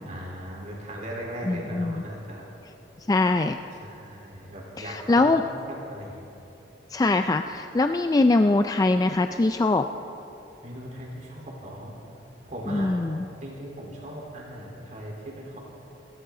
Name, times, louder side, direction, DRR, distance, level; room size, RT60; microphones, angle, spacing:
voice 1, 0.0-2.4 3.8-5.3 5.7-6.3 10.6-12.0 12.4-13.0 13.4-15.6, equal, 45° right, -2 dB, 3.6 m, -38 dB
voice 2, 1.5-2.0 3.1-3.6 4.8-5.4 6.9-9.9 12.7-13.2, left 2 dB, 20° left, 7 dB, 0.3 m, -22 dB
28.5 x 13.0 x 3.8 m, 3.0 s
head